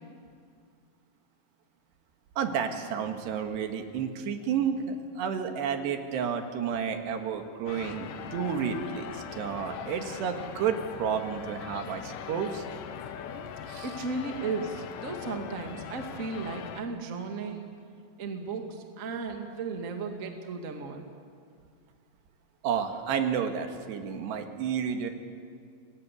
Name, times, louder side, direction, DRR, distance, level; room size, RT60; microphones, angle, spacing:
voice 1, 2.4-12.6 13.7-13.9 22.6-25.1, right 7 dB, 80° right, 5 dB, 3.8 m, -31 dB
sound 1, 7.7-16.8, left 8 dB, 80° left, 3.4 m, -41 dB
voice 2, 13.8-17.7 18.2-21.1, right 4 dB, 30° right, 4 dB, 1.4 m, -35 dB
27.5 x 21.0 x 8.4 m, 2.2 s
omnidirectional pair, 4.9 m